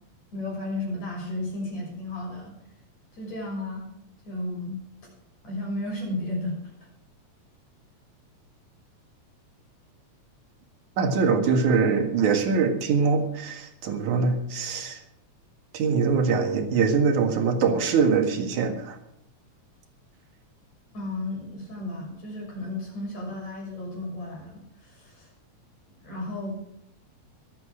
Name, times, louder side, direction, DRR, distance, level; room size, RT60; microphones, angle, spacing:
voice 1, 0.3-2.6 3.1-3.9 4.3-4.8 5.4-6.6 20.9-25.3 26.0-26.6, left 2 dB, 65° left, -3 dB, 7.6 m, -33 dB
voice 2, 11.0-15.0 15.7-19.0, right 5 dB, 80° right, 4 dB, 3.2 m, -23 dB
24.5 x 8.6 x 4.9 m, 0.76 s
omnidirectional pair, 3.4 m